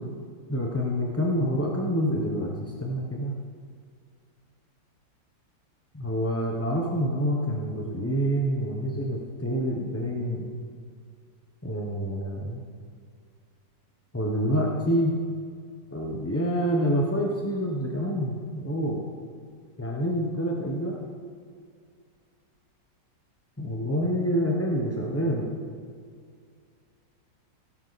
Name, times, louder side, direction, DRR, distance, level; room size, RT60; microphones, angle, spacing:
voice 1, 0.5-3.3 5.9-10.5 11.6-12.6 14.1-15.2 15.9-19.1 19.8-21.0 23.6-25.5, equal, 15° left, -2 dB, 0.6 m, -27 dB
17.0 x 10.5 x 4.1 m, 2.1 s
omnidirectional pair, 2.0 m